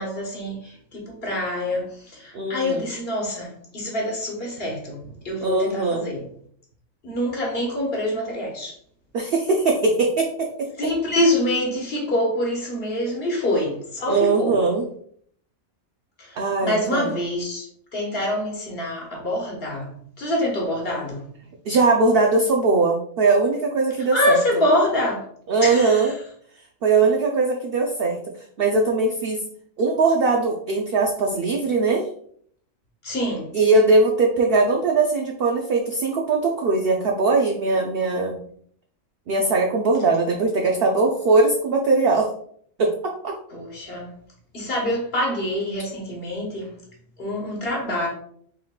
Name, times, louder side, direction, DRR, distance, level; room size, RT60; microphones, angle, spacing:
voice 1, 0.0-6.2 7.0-8.7 10.8-14.6 16.2-17.7 17.9-21.2 24.1-25.2 25.6-26.1 33.0-33.5 43.5-44.1 44.5-46.7 47.2-48.1, left 1 dB, 50° left, 1.6 m, -25 dB
voice 2, 2.3-2.9 5.4-6.0 9.1-10.5 14.1-14.8 16.4-17.1 21.7-24.4 25.5-26.1 26.8-28.2 28.6-29.4 29.8-32.1 33.5-38.4 39.3-42.3 42.8-43.4, right 3 dB, 60° right, 0.7 m, -20 dB
5.3 x 3.7 x 2.3 m
omnidirectional pair, 1.4 m